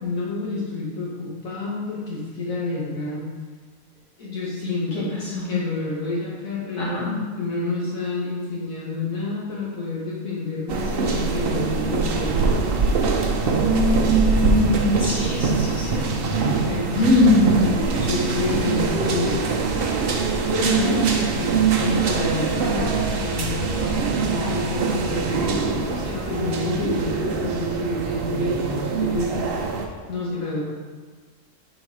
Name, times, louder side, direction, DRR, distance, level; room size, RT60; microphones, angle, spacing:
voice 1, 0.0-3.3 4.2-5.1 5.4-12.5 16.4-17.0 17.4-19.4 20.4-30.6, left 3 dB, 65° left, -5 dB, 1.4 m, -29 dB
voice 2, 4.9-5.5 6.8-7.2 13.6-16.0 17.0-17.6 20.6-20.9, left 1 dB, 85° left, -8 dB, 2.4 m, -21 dB
sound 1, 10.7-29.9, right 4 dB, 60° right, 0.6 m, -23 dB
5.6 x 4.1 x 4.8 m, 1.5 s
omnidirectional pair, 1.6 m